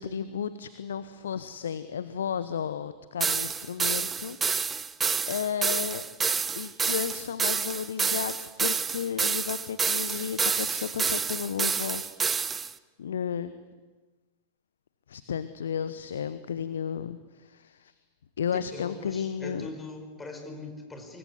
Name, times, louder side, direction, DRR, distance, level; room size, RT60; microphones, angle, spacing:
voice 1, 0.0-4.9 5.3-6.0 6.6-12.4 13.0-13.5 15.1-17.9 18.4-19.7, left 8 dB, 65° left, 14 dB, 1.0 m, -33 dB
sound 1, 3.2-12.7, right 5 dB, 15° right, 0.9 m, -28 dB
voice 2, 18.5-21.2, left 2 dB, 10° left, 4 dB, 4.9 m, -41 dB
24.5 x 23.5 x 9.7 m, 1.2 s
figure-of-eight pair, 90°, 0 cm